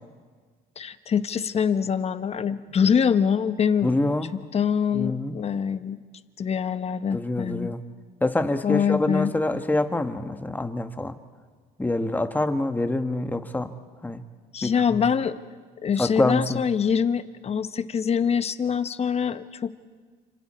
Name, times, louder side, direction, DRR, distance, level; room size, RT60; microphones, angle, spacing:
voice 1, 0.8-4.0 4.5-6.0 6.4-7.7 8.6-9.3 14.5-15.4 15.8-19.8, left 7 dB, 40° left, 12 dB, 1.0 m, -24 dB
voice 2, 3.8-4.3 4.9-5.3 7.1-7.8 8.2-11.2 11.8-13.7 14.0-14.2 14.6-15.1 16.0-16.6, left 2 dB, 10° left, 8 dB, 1.4 m, -26 dB
30.0 x 27.0 x 4.4 m, 1.5 s
cardioid pair, 110°, 17 cm